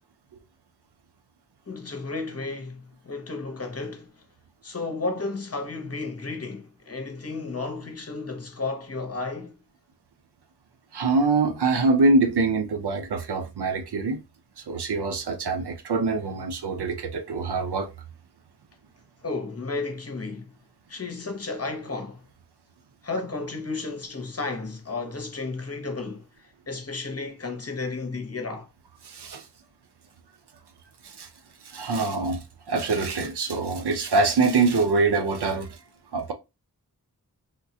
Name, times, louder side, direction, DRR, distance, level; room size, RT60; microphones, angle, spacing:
voice 1, 1.7-4.2 4.6-9.6 19.2-20.5 20.9-22.3 23.0-28.7, left 3 dB, 40° left, 0.9 m, -33 dB
voice 2, 10.9-14.2 14.6-17.9 29.0-29.5 31.0-31.3 31.6-35.8 36.1-36.3, right 3 dB, 90° right, 0.6 m, -24 dB
3.6 x 2.3 x 2.8 m
wide cardioid pair, 45°, 39 cm